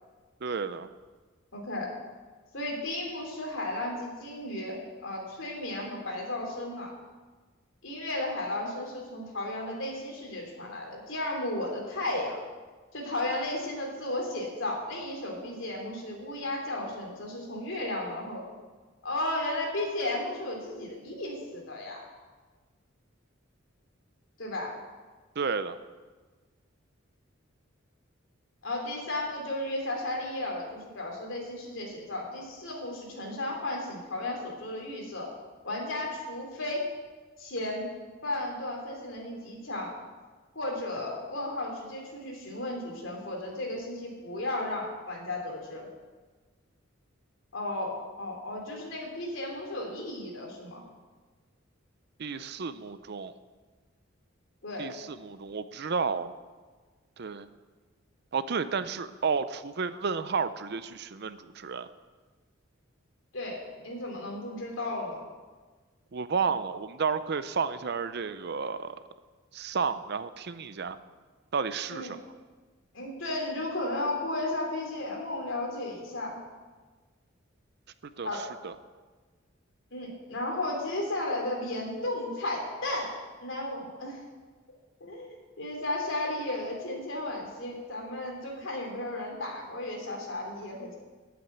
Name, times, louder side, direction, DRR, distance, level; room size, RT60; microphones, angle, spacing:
voice 1, 0.4-0.9 25.4-25.8 52.2-53.3 54.8-56.3 57.2-57.5 58.3-61.9 66.1-69.0 69.5-71.0 71.5-72.2 78.2-78.7, right 5 dB, 55° right, 13 dB, 0.6 m, -32 dB
voice 2, 1.5-1.9 2.5-6.9 7.8-12.4 12.9-18.4 19.0-22.1 24.4-24.7 28.6-35.3 35.6-36.8 37.4-37.9 38.2-39.9 40.5-45.9 47.5-50.8 54.6-54.9 63.3-65.2 71.9-72.1 72.9-76.4 78.2-78.4 79.9-83.1 83.4-84.2 85.0-90.9, left 1 dB, 70° left, 0 dB, 3.2 m, -34 dB
8.6 x 8.6 x 9.1 m, 1.4 s
head